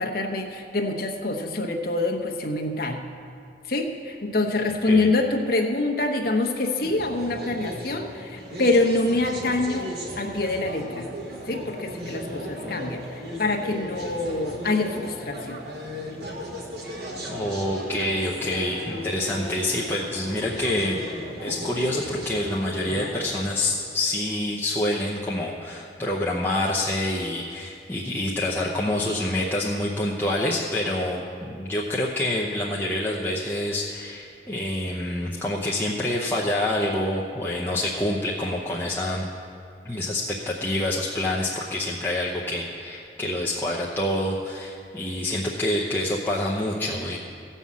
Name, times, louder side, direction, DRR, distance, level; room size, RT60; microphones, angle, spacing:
voice 1, 0.0-3.0 3.7-11.1 11.5-13.0 13.4-15.6, left 2 dB, 55° left, 3 dB, 1.0 m, -25 dB
sound 1, 6.8-23.5, equal, 60° right, 1.5 m, -36 dB
voice 2, 17.3-21.0 21.3-39.2 39.8-47.2, left 1 dB, 10° left, -5 dB, 0.7 m, -27 dB
15.0 x 5.5 x 7.4 m, 2.5 s
head